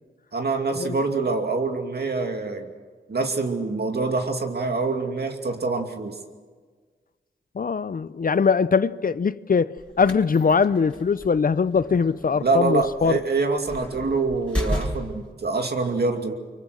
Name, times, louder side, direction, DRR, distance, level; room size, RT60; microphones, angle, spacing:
voice 1, 0.3-2.7 3.1-6.1 12.4-16.3, right 3 dB, 60° right, 2.5 m, -25 dB
voice 2, 7.5-13.2, left 5 dB, 50° left, 0.6 m, -22 dB
sound 1, 9.8-15.3, equal, 5° left, 7.1 m, -33 dB
25.0 x 23.5 x 6.4 m
cardioid pair, 55°, 19 cm